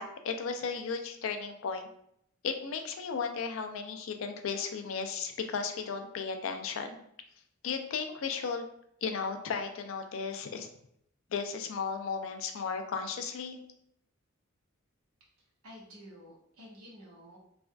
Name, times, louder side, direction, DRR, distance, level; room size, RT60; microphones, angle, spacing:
voice 1, 0.0-1.9 2.4-7.0 7.6-8.7 9.0-10.7 11.3-13.6, left 5 dB, 65° left, 6 dB, 0.4 m, -35 dB
voice 2, 15.6-17.4, equal, 85° right, -4 dB, 1.0 m, -51 dB
3.3 x 2.4 x 2.2 m, 0.71 s
head